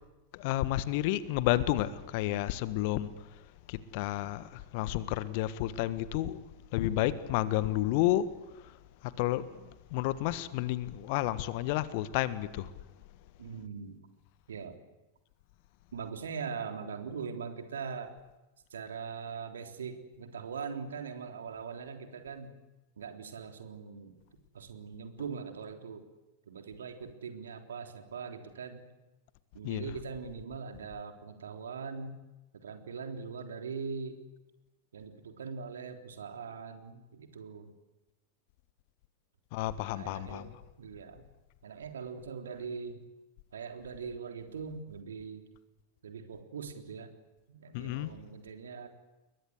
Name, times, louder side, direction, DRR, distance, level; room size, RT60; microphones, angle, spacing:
voice 1, 0.3-3.1 3.7-6.4 6.7-8.3 9.0-9.5 9.9-12.7 29.6-29.9 39.5-40.5 47.7-48.1, left 14 dB, 45° left, 1.5 m, -31 dB
voice 2, 13.4-14.0 14.5-14.7 15.9-18.1 18.7-22.5 23.0-24.1 24.5-26.0 26.5-28.8 29.5-32.2 32.5-34.2 34.9-37.7 39.9-40.5 40.8-41.3 41.6-43.0 43.5-45.4 46.0-47.1 47.5-48.9, right 5 dB, 65° right, 3.6 m, -41 dB
29.5 x 22.5 x 8.1 m
figure-of-eight pair, 90°, 0 cm